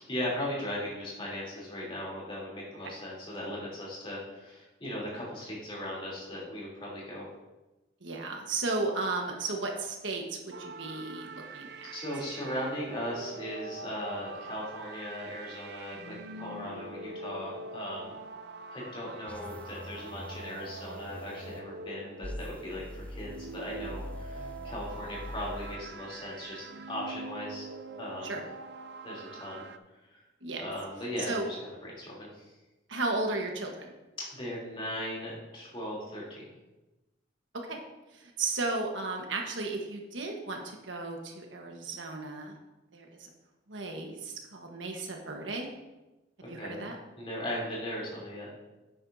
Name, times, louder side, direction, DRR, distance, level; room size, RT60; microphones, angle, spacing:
voice 1, 0.1-7.2 11.9-18.1 18.7-27.7 28.0-28.4 29.0-29.6 30.1-30.2 30.6-31.6 31.8-32.3 34.3-36.5 46.4-46.8 47.2-48.7, left 1 dB, 25° left, -5 dB, 3.2 m, -38 dB
voice 2, 8.0-11.9 28.2-28.4 30.4-30.6 31.3-31.5 32.9-33.9 37.7-37.8 38.1-42.6 42.9-43.3 43.7-45.7 46.5-47.0, right 3 dB, 80° right, 2 dB, 1.3 m, -34 dB
sound 1, 10.5-29.8, right 3 dB, 60° right, 0.4 m, -44 dB
sound 2, 19.3-21.6 22.2-25.8, left 1 dB, 5° left, 0.5 m, -43 dB
10.5 x 8.9 x 2.7 m, 1.1 s
head